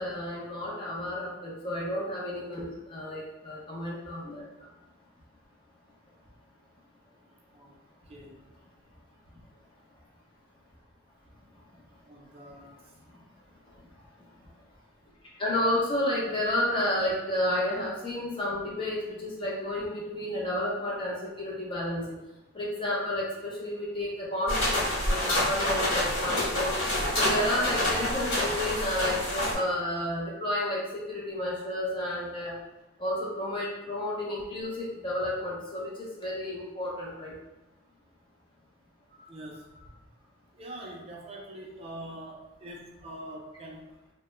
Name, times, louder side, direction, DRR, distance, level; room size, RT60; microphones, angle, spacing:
voice 1, 0.0-4.7 13.1-13.2 15.4-22.2 22.5-26.8 27.2-32.6 33.0-37.3, left 1 dB, 25° left, -5 dB, 0.6 m, -31 dB
voice 2, 8.0-8.4 12.0-12.8 39.3-39.7 40.5-43.9, right 1 dB, 30° right, -1 dB, 0.4 m, -44 dB
sound 1, 24.5-29.5, left 1 dB, 90° left, 1.3 m, -27 dB
2.1 x 2.0 x 3.0 m, 0.99 s
head